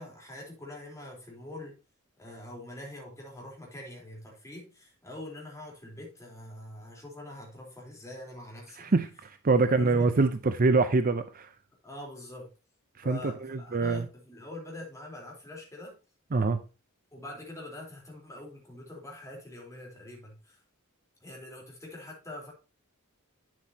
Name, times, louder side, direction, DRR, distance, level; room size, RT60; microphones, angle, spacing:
voice 1, 0.0-1.7 2.2-8.9 9.5-10.1 11.8-12.5 13.0-15.9 17.1-20.6 21.2-22.5, left 1 dB, 15° left, 3.7 m, -44 dB
voice 2, 8.8-11.5 13.1-14.1 16.3-16.6, right 3 dB, 40° right, 0.6 m, -25 dB
9.3 x 7.4 x 2.8 m
head